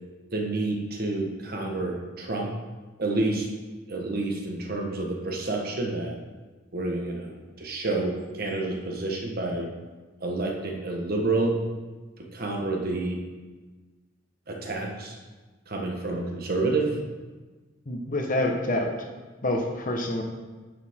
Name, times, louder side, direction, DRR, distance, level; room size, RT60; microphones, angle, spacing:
voice 1, 0.3-2.5 3.0-3.5 3.9-6.1 6.7-9.7 10.2-11.6 12.2-13.2 14.5-15.1 15.7-16.9, right 2 dB, 50° right, 1 dB, 1.3 m, -29 dB
voice 2, 17.9-18.9 19.4-20.2, left 1 dB, 45° left, 2 dB, 1.2 m, -27 dB
10.0 x 7.0 x 3.7 m, 1.3 s
head